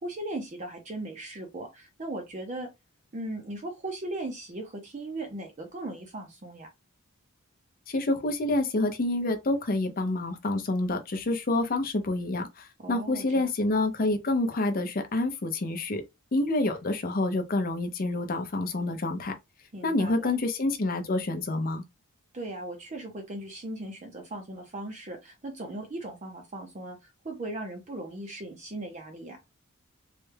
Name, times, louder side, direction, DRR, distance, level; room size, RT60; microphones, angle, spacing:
voice 1, 0.0-2.7 3.1-6.7 12.8-13.5 19.7-20.3 22.3-29.4, right 1 dB, 35° right, 0.5 m, -38 dB
voice 2, 7.9-16.0 16.3-19.3 19.8-21.8, left 2 dB, 40° left, 0.6 m, -28 dB
3.2 x 2.2 x 3.2 m
head